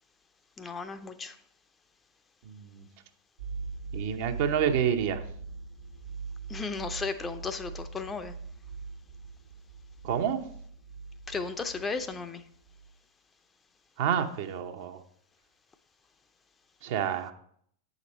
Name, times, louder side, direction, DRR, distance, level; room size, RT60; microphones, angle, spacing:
voice 1, 0.6-1.4 6.5-8.3 11.3-12.4, left 4 dB, 20° left, 10 dB, 0.5 m, -35 dB
voice 2, 2.4-2.8 3.9-5.2 10.0-10.4 14.0-15.0 16.8-17.3, right 8 dB, 60° right, 6 dB, 0.7 m, -28 dB
sound 1, 3.4-12.4 12.7-12.9, right 4 dB, 85° right, 1.2 m, -41 dB
8.2 x 5.1 x 4.1 m, 0.66 s
hypercardioid pair, 95°, 0 cm